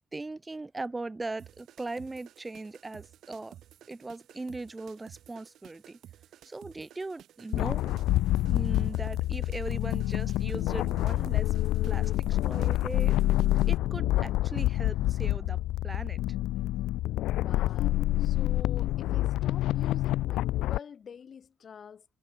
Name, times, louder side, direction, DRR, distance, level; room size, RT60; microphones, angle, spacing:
voice 1, 0.0-3.6 3.9-6.0 6.4-7.9 8.4-11.5 11.8-13.2 13.7-16.2, right 2 dB, 20° right, 3.0 m, -39 dB
sound 1, 1.4-13.8, right 11 dB, 75° right, 2.6 m, -54 dB
sound 2, 7.5-20.8, left 15 dB, 90° left, 0.3 m, -27 dB
voice 2, 17.3-22.1, left 7 dB, 50° left, 4.2 m, -46 dB
cardioid pair, 90°, 0 cm